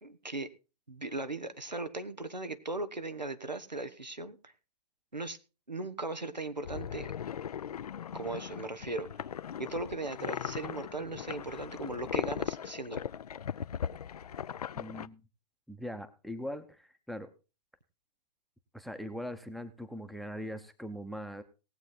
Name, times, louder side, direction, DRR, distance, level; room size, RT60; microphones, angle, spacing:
voice 1, 0.0-0.5 0.9-4.5 5.1-5.4 5.7-7.1 8.1-13.1, right 2 dB, 90° right, 10 dB, 1.3 m, -38 dB
sound 1, 6.6-15.1, left 8 dB, 65° left, 0.5 m, -38 dB
voice 2, 14.7-15.2 15.7-17.3 18.7-21.4, equal, ahead, 11 dB, 0.9 m, -41 dB
19.0 x 8.1 x 4.0 m, 0.31 s
figure-of-eight pair, 115°, 21 cm